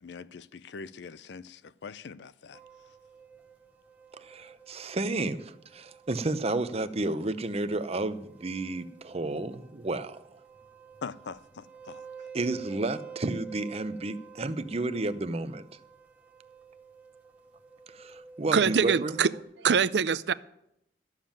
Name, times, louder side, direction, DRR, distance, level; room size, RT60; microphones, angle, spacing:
voice 1, 0.0-2.6 11.0-12.1, left 5 dB, 75° left, 0.5 m, -43 dB
sound 1, 2.5-19.4, right 6 dB, 10° right, 1.6 m, -50 dB
voice 2, 4.2-10.2 12.3-15.7 17.9-19.2, right 2 dB, 35° right, 0.7 m, -31 dB
voice 3, 18.5-19.3 19.6-20.3, right 6 dB, 70° right, 0.5 m, -24 dB
13.0 x 7.4 x 8.9 m
head